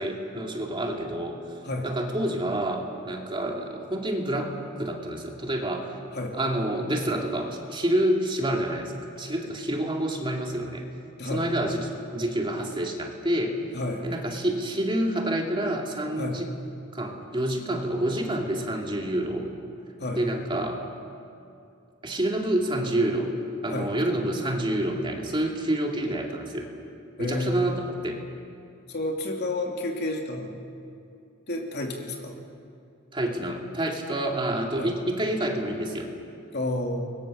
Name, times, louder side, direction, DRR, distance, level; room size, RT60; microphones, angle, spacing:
voice 1, 0.0-1.4 1.8-6.0 6.3-10.8 11.3-13.6 14.0-16.5 16.9-19.5 20.1-20.8 22.0-23.4 23.6-26.7 27.2-28.2 33.1-36.1, right 1 dB, 25° right, 1 dB, 2.6 m, -28 dB
voice 2, 13.7-14.1 16.2-16.4 20.0-20.2 23.7-23.9 27.2-27.7 28.9-30.6 31.5-32.4 34.8-34.9 36.5-37.2, left 2 dB, 55° left, 1 dB, 2.8 m, -30 dB
29.5 x 23.0 x 6.7 m, 2.6 s
head